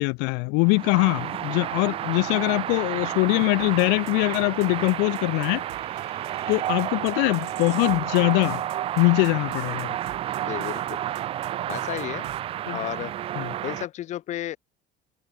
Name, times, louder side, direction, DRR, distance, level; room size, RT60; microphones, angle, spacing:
voice 1, 0.0-5.6 6.5-8.6 9.0-9.9 12.7-12.8 13.4-13.5, left 34 dB, 90° left, 1.0 m, -22 dB
sound 1, 0.6-13.9, right 12 dB, 30° right, 0.5 m, -31 dB
sound 2, 3.6-12.4, right 21 dB, 65° right, 4.6 m, -45 dB
voice 2, 10.4-11.0 11.7-12.3 12.7-13.1 13.6-14.6, left 13 dB, 45° left, 1.9 m, -32 dB
cardioid pair, 165°, 18 cm